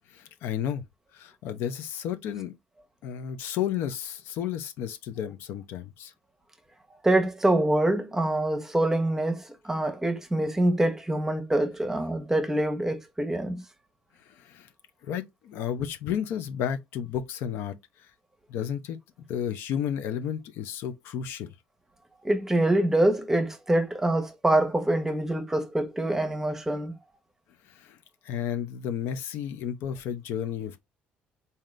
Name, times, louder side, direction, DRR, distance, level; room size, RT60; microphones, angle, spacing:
voice 1, 0.1-0.8 1.1-2.5 3.0-6.1 14.3-14.7 15.0-17.7 18.5-19.0 19.3-21.5 27.7-28.0 28.2-30.8, left 9 dB, 75° left, 0.6 m, -32 dB
voice 2, 7.0-13.6 22.2-26.9, right 1 dB, 10° right, 0.9 m, -25 dB
3.7 x 2.8 x 3.1 m
supercardioid pair, 95°, 4 cm